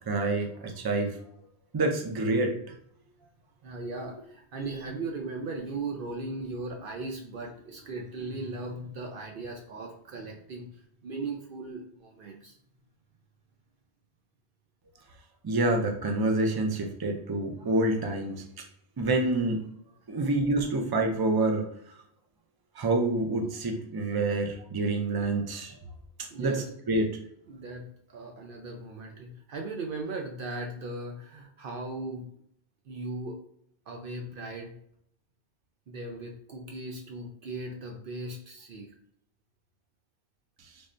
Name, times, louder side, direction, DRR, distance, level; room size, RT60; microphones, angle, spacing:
voice 1, 0.1-1.2 1.7-2.5 15.4-18.4 19.0-19.6 20.1-21.7 22.8-25.8 26.4-27.2, right 2 dB, 35° right, 3 dB, 0.4 m, -27 dB
voice 2, 3.6-12.6 26.3-26.7 27.5-32.2 32.9-33.4 33.9-34.7 35.9-38.9, right 2 dB, 60° right, 2 dB, 0.7 m, -38 dB
3.5 x 3.2 x 2.5 m, 0.69 s
omnidirectional pair, 1.1 m